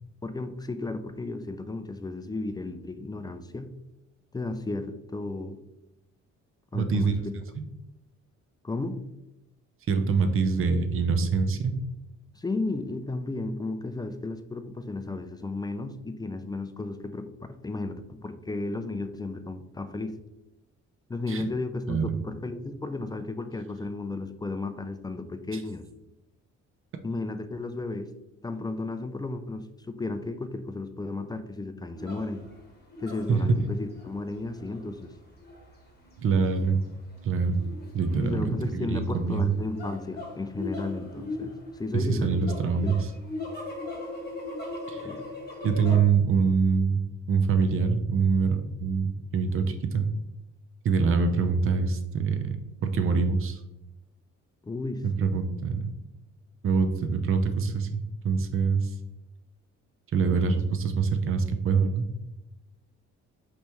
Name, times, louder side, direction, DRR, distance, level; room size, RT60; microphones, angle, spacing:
voice 1, 0.2-3.7 4.3-5.6 6.7-7.3 8.6-9.0 12.3-20.2 21.1-25.9 27.0-28.1 28.4-32.4 33.0-35.1 38.2-42.4 42.8-43.0 45.0-45.2 54.6-55.0, left 2 dB, 15° left, 9 dB, 0.3 m, -34 dB
voice 2, 6.7-7.2 7.6-7.7 9.9-11.8 21.3-21.4 21.9-22.0 33.3-33.6 36.2-36.8 37.2-37.6 37.9-39.4 41.9-43.0 44.9-45.1 45.6-47.0 47.3-50.1 50.8-52.6 52.8-53.6 55.2-55.9 56.6-58.0 58.2-58.9 60.1-62.1, right 5 dB, 45° right, 7 dB, 0.6 m, -24 dB
sound 1, 32.0-46.0, left 2 dB, 35° left, 1.4 m, -40 dB
5.4 x 3.2 x 3.0 m, 0.91 s
cardioid pair, 90°, 30 cm